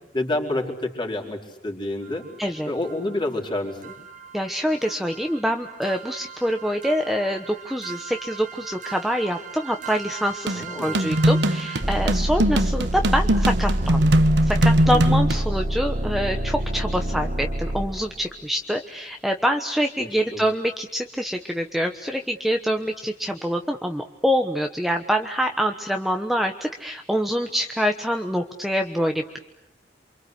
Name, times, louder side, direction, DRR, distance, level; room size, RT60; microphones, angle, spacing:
voice 1, 0.1-2.2 2.7-3.9 10.5-11.1 14.9-15.2 20.0-20.4, left 1 dB, 25° left, 1 dB, 4.6 m, -28 dB
sound 1, 2.1-2.2 2.9-3.0 3.3-3.4 3.8-18.3, right 1 dB, 45° right, 1.9 m, -29 dB
voice 2, 2.4-2.7 4.3-14.1 14.5-29.4, equal, ahead, 4 dB, 1.1 m, -25 dB
sound 2, 10.5-15.4, right 1 dB, 70° right, 1.3 m, -21 dB
28.5 x 26.0 x 8.2 m, 0.89 s
head